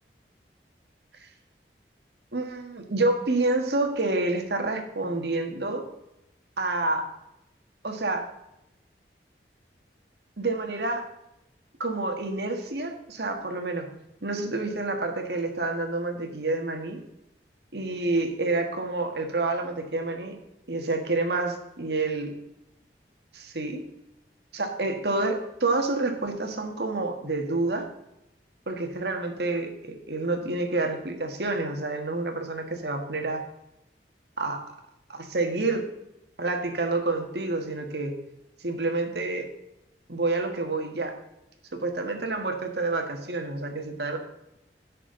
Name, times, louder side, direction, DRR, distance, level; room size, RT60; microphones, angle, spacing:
voice 1, 2.3-5.9 6.6-7.1 7.8-8.3 10.4-11.0 11.8-13.9 14.2-17.0 17.7-20.4 20.7-22.3 23.3-23.9 24.5-27.9 28.7-33.4 34.4-34.6 35.1-35.9 36.4-38.2 38.6-39.5 40.1-41.2 41.7-44.2, right 2 dB, 70° right, 4 dB, 1.7 m, -28 dB
16.0 x 6.6 x 3.9 m, 0.86 s
head